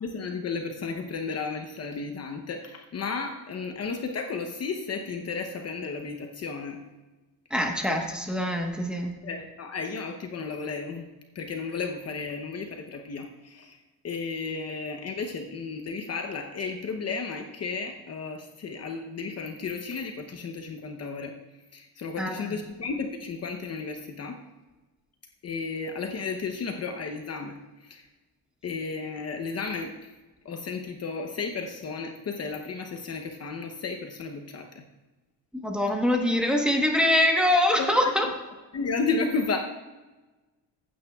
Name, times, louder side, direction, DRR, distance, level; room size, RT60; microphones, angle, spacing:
voice 1, 0.0-6.8 9.2-11.0 11.3-13.8 14.0-21.3 21.7-24.4 25.4-28.1 28.6-30.1 30.4-34.8 37.8-38.1 38.7-39.6, left 4 dB, 40° left, 4 dB, 0.8 m, -33 dB
voice 2, 7.5-9.1 22.2-22.6 35.5-38.3, left 1 dB, ahead, 0 dB, 1.1 m, -24 dB
15.0 x 8.9 x 2.3 m, 1.2 s
cardioid pair, 155°, 38 cm